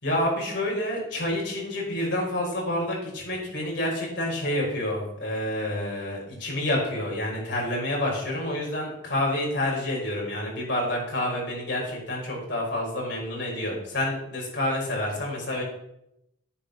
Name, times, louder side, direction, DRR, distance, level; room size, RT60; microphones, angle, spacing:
voice 1, 0.0-15.6, left 1 dB, 60° left, -3 dB, 5.6 m, -28 dB
9.9 x 9.7 x 6.1 m, 0.81 s
head